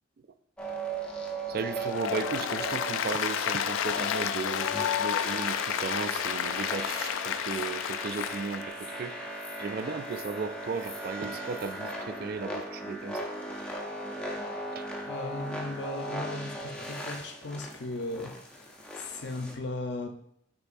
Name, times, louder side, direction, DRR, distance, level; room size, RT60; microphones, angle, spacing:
sound 1, 0.6-19.5, right 1 dB, 5° left, 0.6 m, -38 dB
voice 1, 1.5-13.2 14.7-14.9, right 5 dB, 50° right, 10 dB, 0.3 m, -35 dB
Applause, 1.9-8.6, left 9 dB, 85° left, 0.3 m, -31 dB
voice 2, 15.0-20.1, left 2 dB, 60° left, 4 dB, 0.7 m, -37 dB
8.5 x 4.5 x 2.5 m, 0.74 s
head